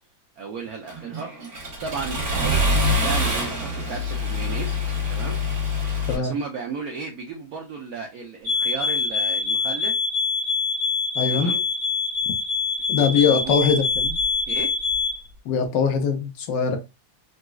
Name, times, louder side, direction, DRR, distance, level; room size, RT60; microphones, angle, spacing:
voice 1, 0.4-1.3 1.8-2.6 3.0-4.8 5.1-5.4 6.1-10.0 11.3-11.6 13.0-13.6 14.5-14.8, right 5 dB, 75° right, 0.8 m, -34 dB
Accelerating revving vroom, 0.9-6.1, left 1 dB, 50° right, 1.9 m, -25 dB
sound 1, 8.4-15.2, left 4 dB, 35° right, 1.6 m, -24 dB
voice 2, 11.1-11.5 12.9-14.2 15.4-16.8, left 6 dB, 70° left, 1.2 m, -22 dB
4.0 x 2.3 x 2.2 m
omnidirectional pair, 2.1 m